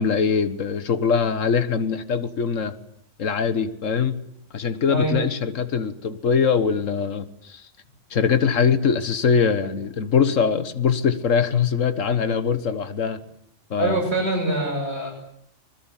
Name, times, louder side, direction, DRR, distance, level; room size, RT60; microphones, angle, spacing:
voice 1, 0.0-2.8 3.2-4.2 4.5-7.6 8.1-13.2 13.7-14.0, left 6 dB, 70° left, 11 dB, 1.8 m, -22 dB
voice 2, 13.8-15.1, right 2 dB, 55° right, 1 dB, 7.4 m, -24 dB
26.0 x 20.5 x 9.2 m, 0.69 s
omnidirectional pair, 1.4 m